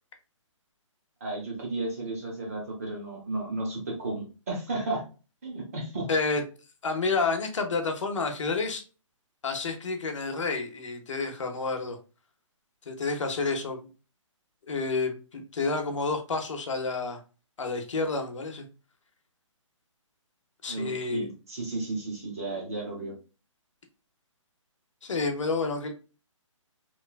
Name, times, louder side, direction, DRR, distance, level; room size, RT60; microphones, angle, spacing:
voice 1, 1.2-5.0 5.4-6.1 20.7-23.1, right 2 dB, 30° right, -1 dB, 0.7 m, -33 dB
voice 2, 6.1-6.4 6.8-8.8 9.4-12.0 12.9-13.9 14.6-17.2 17.6-18.7 20.6-21.3 25.0-25.9, left 4 dB, 65° left, 5 dB, 0.7 m, -29 dB
3.1 x 2.2 x 2.2 m, 0.34 s
hypercardioid pair, 175°, 17 cm